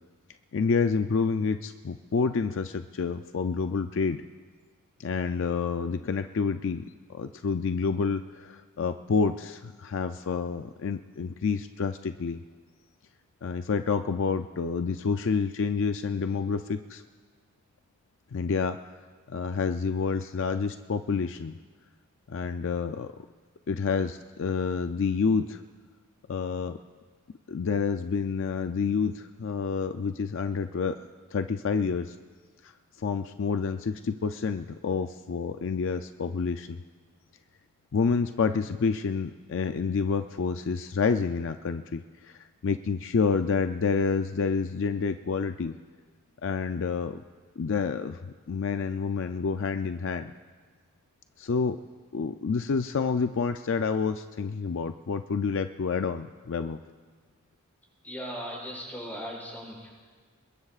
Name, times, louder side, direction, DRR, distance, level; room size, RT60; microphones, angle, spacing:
voice 1, 0.5-4.2 5.0-6.8 7.1-12.4 13.4-17.0 18.3-18.8 19.3-21.6 22.3-23.1 23.7-25.6 26.3-26.8 27.5-30.9 31.3-32.1 32.6-32.7 33.0-36.8 37.9-45.7 46.4-47.2 47.6-50.3 51.4-51.8 52.1-56.8, left 5 dB, 55° left, 8 dB, 0.4 m, -28 dB
voice 2, 58.0-59.9, equal, 10° left, -6 dB, 6.3 m, -38 dB
27.0 x 22.0 x 2.4 m, 1.5 s
head